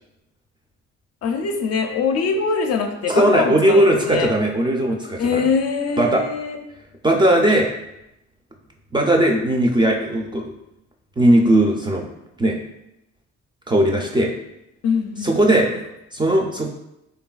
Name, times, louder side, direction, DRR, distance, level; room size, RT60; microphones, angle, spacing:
voice 1, 1.2-4.3 5.2-6.6 14.8-15.5, left 5 dB, 55° left, 5 dB, 0.4 m, -23 dB
voice 2, 3.1-5.4 6.0-6.2 7.0-7.7 8.9-10.4 11.2-12.1 12.4-12.6 13.7-14.3 15.2-15.7 16.1-16.7, right 1 dB, 15° right, 0 dB, 0.3 m, -18 dB
3.3 x 2.3 x 2.3 m, 0.86 s
cardioid pair, 90°, 30 cm